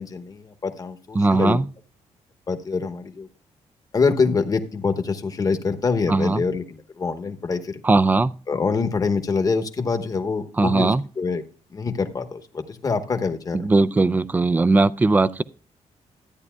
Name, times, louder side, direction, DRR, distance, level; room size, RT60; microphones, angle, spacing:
voice 1, 0.0-1.6 2.5-3.3 3.9-7.8 8.5-11.4 11.7-13.7, left 4 dB, 30° left, 1.0 m, -25 dB
voice 2, 1.1-1.7 6.1-6.4 7.8-8.3 10.6-11.0 13.5-15.4, right 3 dB, 15° right, 0.3 m, -19 dB
13.5 x 9.7 x 2.2 m
wide cardioid pair, 165°, 12 cm